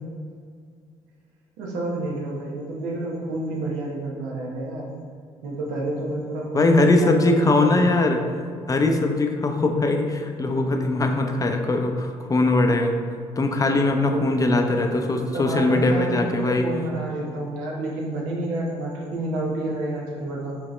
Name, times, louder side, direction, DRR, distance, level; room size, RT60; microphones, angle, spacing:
voice 1, 1.6-4.9 5.4-7.9 14.0-15.1 15.3-20.6, right 1 dB, 85° right, -2 dB, 0.9 m, -29 dB
voice 2, 6.5-8.2 8.7-12.9 13.4-16.6, left 2 dB, 25° left, 4 dB, 0.6 m, -21 dB
5.0 x 2.9 x 3.1 m, 2.1 s
hypercardioid pair, 55°, 13 cm